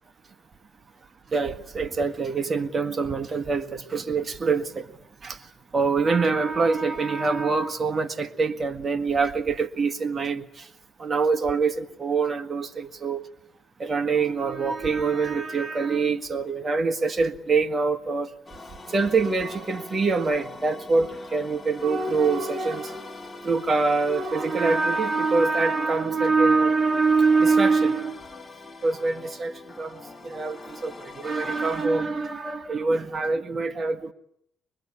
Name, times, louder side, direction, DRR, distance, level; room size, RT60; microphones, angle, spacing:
voice 1, 1.3-4.9 5.2-5.5 5.7-10.7 11.0-13.2 13.8-18.3 18.9-23.1 23.4-28.2 28.8-34.1, right 4 dB, 35° right, 1.7 m, -24 dB
sound 1, 18.5-31.9, left 3 dB, 15° left, 3.3 m, -43 dB
24.0 x 21.5 x 9.9 m
cardioid pair, 90°, 0 cm